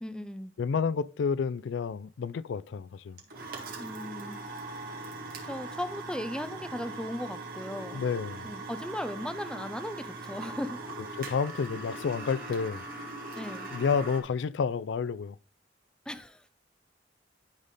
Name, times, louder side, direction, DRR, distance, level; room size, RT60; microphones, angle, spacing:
voice 1, 0.0-0.6 3.8-4.4 5.4-8.0 8.4-10.8 13.4-13.7 16.1-16.4, left 1 dB, 5° left, 0.5 m, -37 dB
voice 2, 0.6-3.2 7.9-8.5 11.0-12.8 13.7-15.4, left 5 dB, 75° left, 0.4 m, -30 dB
sound 1, 3.2-14.2, right 2 dB, 50° right, 1.9 m, -41 dB
11.5 x 4.1 x 3.6 m
head